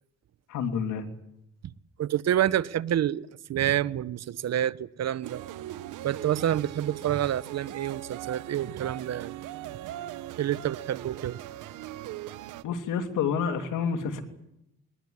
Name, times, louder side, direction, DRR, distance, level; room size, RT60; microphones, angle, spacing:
voice 1, 0.5-1.1 12.6-14.2, left 6 dB, 85° left, 3.1 m, -29 dB
voice 2, 2.0-5.4 6.0-9.4 10.4-11.4, right 11 dB, 60° right, 0.9 m, -28 dB
sound 1, 5.2-12.6, right 13 dB, 85° right, 1.1 m, -40 dB
21.0 x 21.0 x 9.8 m
cardioid pair, 90°, 30 cm